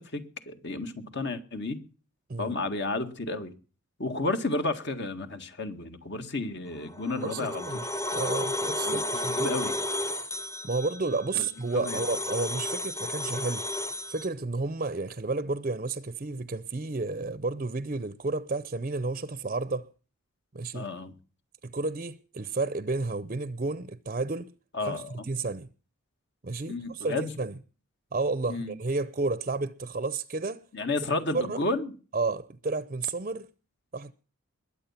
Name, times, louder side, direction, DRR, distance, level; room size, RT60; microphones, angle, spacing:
voice 1, 0.0-1.8 2.4-3.5 4.0-7.9 8.8-9.7 11.3-11.5 11.7-12.0 20.7-21.1 24.7-25.2 26.7-27.3 28.5-28.7 30.7-31.9, left 2 dB, 55° left, 2.0 m, -32 dB
sound 1, 6.8-14.3, left 1 dB, 15° left, 0.9 m, -33 dB
voice 2, 7.2-7.8 8.1-9.5 10.6-13.6 14.1-19.9 20.5-20.9 21.6-24.5 24.8-25.7 26.4-27.5 28.1-30.6 31.3-31.6 32.1-33.5 33.9-34.1, right 3 dB, 35° right, 0.6 m, -31 dB
21.5 x 8.6 x 5.8 m
head